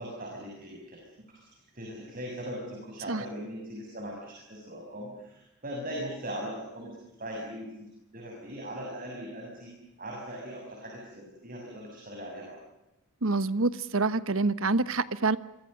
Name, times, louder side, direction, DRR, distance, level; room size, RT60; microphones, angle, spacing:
voice 1, 0.0-1.4 1.7-9.7 10.0-12.6, equal, 40° right, -1 dB, 6.8 m, -40 dB
voice 2, 13.2-15.4, right 3 dB, 70° right, 15 dB, 1.2 m, -26 dB
28.0 x 24.0 x 6.7 m, 0.90 s
head